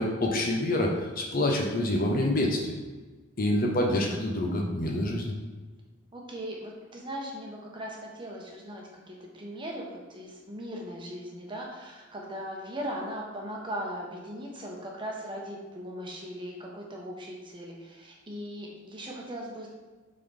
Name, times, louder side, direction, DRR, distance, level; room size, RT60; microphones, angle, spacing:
voice 1, 0.0-2.7 3.4-5.3, left 1 dB, 45° left, 0 dB, 0.8 m, -27 dB
voice 2, 6.1-19.7, equal, 25° right, -1 dB, 1.0 m, -39 dB
7.4 x 3.9 x 3.4 m, 1.3 s
head